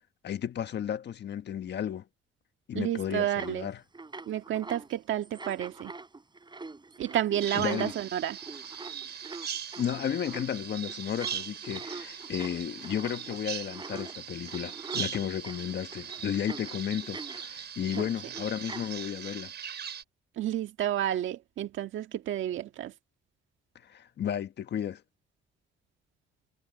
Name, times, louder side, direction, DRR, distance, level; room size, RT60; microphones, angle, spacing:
voice 1, 0.2-2.1 2.7-3.8 7.5-7.9 9.8-19.5 23.8-25.0, left 9 dB, 60° left, 1.5 m, -33 dB
voice 2, 2.7-3.7 4.3-5.9 7.0-8.4 18.0-18.1 20.4-22.9, right 11 dB, 75° right, 1.6 m, -30 dB
sound 1, 3.4-3.6 3.9-4.9 5.2-17.5 17.9-19.3, right 3 dB, 20° right, 7.6 m, -44 dB
Bird vocalization bird call bird song, 7.4-20.0, right 8 dB, 60° right, 5.5 m, -40 dB
cardioid pair, 90°, 20 cm